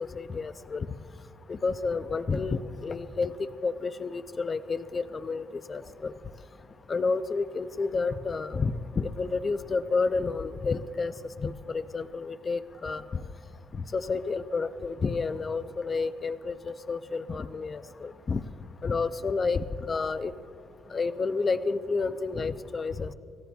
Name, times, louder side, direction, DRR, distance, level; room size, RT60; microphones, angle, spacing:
voice 1, 0.1-0.9 1.5-6.1 6.9-11.1 11.4-13.0 13.9-18.4 18.8-20.3 20.9-23.1, left 4 dB, 25° left, 12 dB, 0.4 m, -30 dB
28.5 x 15.5 x 2.3 m, 2.3 s
cardioid pair, 165°, 0 cm